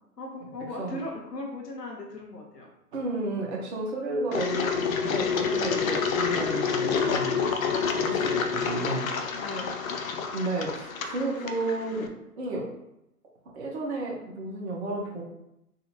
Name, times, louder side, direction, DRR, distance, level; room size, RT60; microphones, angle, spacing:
voice 1, 0.2-2.7 9.4-9.7, left 1 dB, 85° left, 0 dB, 1.2 m, -38 dB
voice 2, 2.9-7.4 7.9-9.1 10.3-12.1 12.4-12.7 13.5-15.2, right 2 dB, 45° right, -2 dB, 1.1 m, -32 dB
Engine, 4.3-12.1, left 6 dB, 60° left, 0.6 m, -28 dB
3.9 x 2.7 x 2.8 m, 0.85 s
figure-of-eight pair, 125°, 47 cm